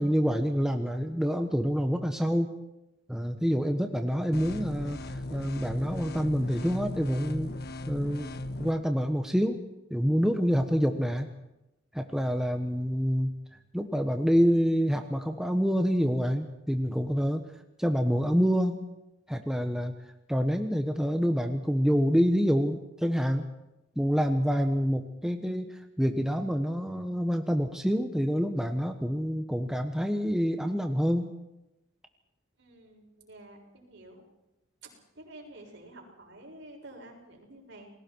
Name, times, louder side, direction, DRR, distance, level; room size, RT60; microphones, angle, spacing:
voice 1, 0.0-2.5 3.1-7.5 7.9-8.3 8.6-9.6 9.9-11.3 11.9-13.3 13.7-17.4 17.8-18.9 19.3-19.9 20.3-23.5 23.9-31.3, equal, 5° right, 5 dB, 1.3 m, -27 dB
sound 1, 4.3-8.7, left 1 dB, 55° left, 1.4 m, -37 dB
voice 2, 32.6-34.2 34.8-37.9, right 1 dB, 65° right, 0 dB, 7.1 m, -50 dB
29.5 x 21.0 x 4.7 m, 0.91 s
head